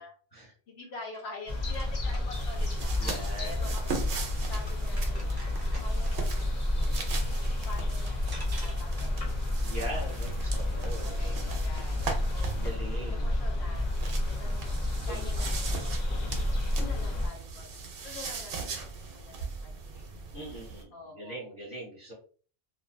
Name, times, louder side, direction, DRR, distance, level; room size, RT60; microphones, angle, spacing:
voice 1, 0.7-4.0 4.5-9.4 9.6-9.7 10.1-10.6 11.0-17.7 18.0-20.1 20.9-21.5, left 3 dB, 85° left, 0 dB, 1.1 m, -47 dB
sound 1, 0.8-6.3 7.8-7.9 8.3-11.0, right 1 dB, 25° right, 0.6 m, -51 dB
sound 2, 1.5-17.3, left 1 dB, 45° left, 0.9 m, -30 dB
sound 3, 2.3-12.7 13.7-20.8, right 4 dB, 70° right, 0.8 m, -39 dB
voice 2, 3.0-3.7 9.6-11.6 12.5-13.3 15.1-15.2 16.8-17.1 20.3-22.1, right 1 dB, 20° left, -7 dB, 1.0 m, -41 dB
2.5 x 2.2 x 2.5 m, 0.41 s
omnidirectional pair, 1.1 m